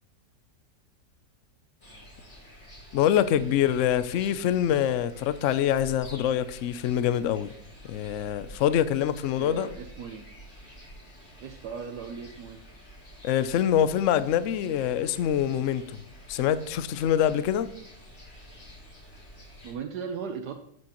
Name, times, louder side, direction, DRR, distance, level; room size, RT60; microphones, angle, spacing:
sound 1, 1.8-19.7, equal, 40° left, 2.9 m, -49 dB
voice 1, 2.9-7.5 7.9-9.7 13.2-16.0 16.3-17.7, left 10 dB, 65° left, 0.7 m, -25 dB
voice 2, 9.4-10.3 11.4-12.6 19.6-20.5, right 6 dB, 75° right, 1.2 m, -37 dB
12.5 x 7.2 x 3.0 m
omnidirectional pair, 1.8 m